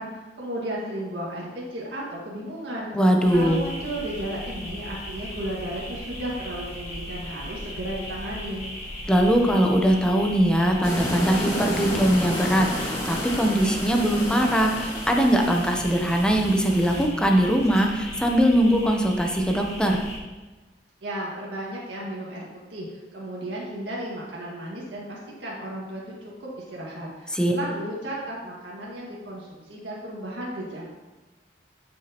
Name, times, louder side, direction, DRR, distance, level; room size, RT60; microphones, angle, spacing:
voice 1, 0.0-2.9 3.3-8.7 21.0-22.9 23.1-26.1 26.4-30.8, right 1 dB, 70° right, -6 dB, 2.0 m, -34 dB
voice 2, 2.9-3.6 9.1-20.0 27.3-27.5, equal, 5° left, 2 dB, 0.9 m, -21 dB
sound 1, 3.2-20.2, equal, 35° left, 1.7 m, -38 dB
sound 2, 10.8-17.0, equal, 20° left, 2.0 m, -31 dB
11.5 x 6.3 x 3.0 m, 1.2 s
head